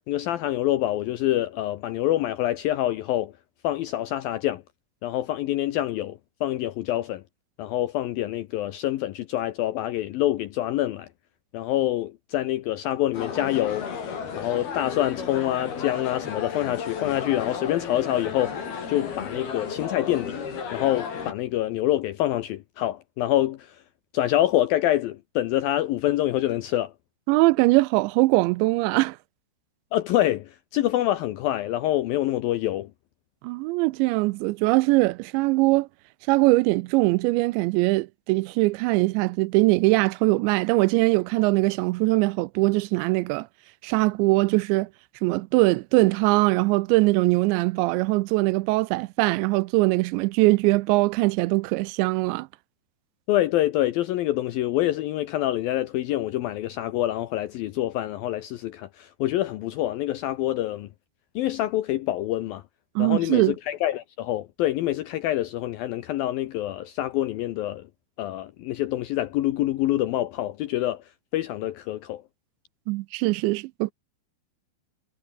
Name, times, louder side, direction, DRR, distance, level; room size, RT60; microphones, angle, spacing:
voice 1, 0.1-3.3 3.6-4.6 5.0-7.2 7.6-11.1 11.5-13.9 14.4-20.4 20.7-23.8 24.1-26.9 29.9-32.9 53.3-60.9 61.4-62.6 63.0-67.8 68.2-71.0 71.3-72.2, left 14 dB, 80° left, 2.1 m, -26 dB
sound 1, 13.1-21.3, left 6 dB, 60° left, 6.3 m, -34 dB
voice 2, 27.3-29.2 33.4-35.9 36.3-43.5 43.8-44.9 45.2-52.5 63.0-63.6 72.9-73.9, right 22 dB, 85° right, 2.8 m, -21 dB
omnidirectional pair, 5.2 m